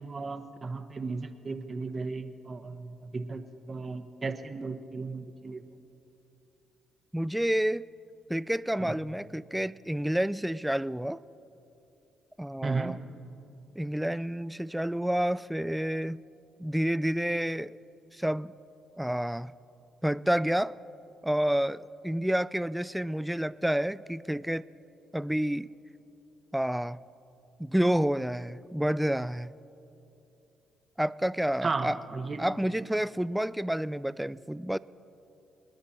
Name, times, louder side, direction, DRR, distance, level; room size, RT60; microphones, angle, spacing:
voice 1, 0.0-5.6 8.8-8.9 12.6-13.0 31.6-32.5, right 4 dB, 35° right, 9 dB, 1.0 m, -35 dB
voice 2, 7.1-7.9 8.3-11.2 12.4-13.0 13.8-16.2 16.6-17.8 18.1-18.5 19.0-19.5 20.0-20.7 21.2-24.7 25.1-25.7 26.5-27.0 27.6-29.5 31.0-32.0 32.4-34.8, right 1 dB, 5° right, 18 dB, 0.3 m, -29 dB
26.0 x 10.5 x 4.3 m, 3.0 s
supercardioid pair, 75°, 0 cm